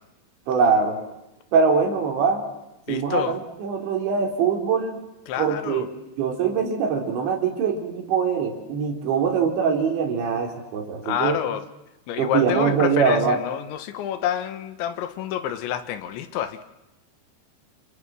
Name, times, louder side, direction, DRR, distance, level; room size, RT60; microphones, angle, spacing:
voice 1, 0.5-1.0 1.5-2.4 2.9-5.0 5.4-5.9 6.2-11.4 12.2-13.4, right 6 dB, 70° right, 2 dB, 5.6 m, -22 dB
voice 2, 2.9-3.4 5.3-5.9 11.0-11.6 12.1-16.6, left 10 dB, 75° left, 10 dB, 3.4 m, -28 dB
29.5 x 29.5 x 6.2 m, 0.95 s
omnidirectional pair, 5.5 m